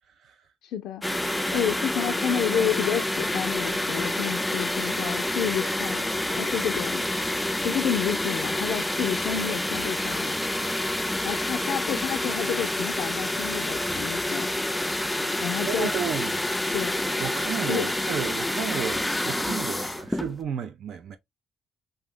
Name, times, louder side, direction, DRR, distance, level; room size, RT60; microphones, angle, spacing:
voice 1, 0.6-1.0 1.5-7.1 7.6-10.4 11.2-14.5 15.4-15.9 16.7-17.0 17.7-17.9, left 9 dB, 85° left, 0.3 m, -30 dB
sound 1, 1.0-20.4, left 1 dB, 5° left, 0.3 m, -28 dB
voice 2, 15.6-16.3 17.2-21.2, right 8 dB, 70° right, 0.4 m, -32 dB
2.6 x 2.2 x 3.5 m
cardioid pair, 90°, 0 cm